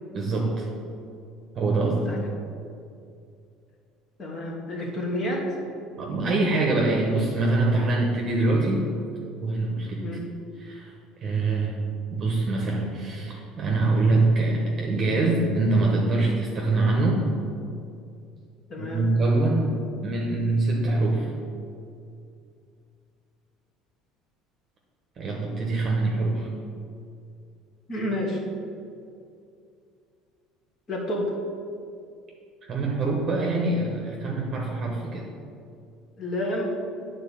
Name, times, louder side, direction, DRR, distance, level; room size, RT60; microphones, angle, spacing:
voice 1, 0.1-0.7 1.5-2.1 6.0-8.8 9.4-10.2 10.6-10.9 11.2-11.8 12.1-17.2 18.8-21.3 25.2-26.5 32.7-35.2, right 2 dB, 35° right, -1 dB, 1.0 m, -24 dB
voice 2, 4.2-5.6 10.0-10.3 18.7-19.0 27.9-28.4 30.9-31.3 36.2-36.7, left 1 dB, 30° left, -1 dB, 1.5 m, -29 dB
9.1 x 3.9 x 6.9 m, 2.5 s
cardioid pair, 150°, 0 cm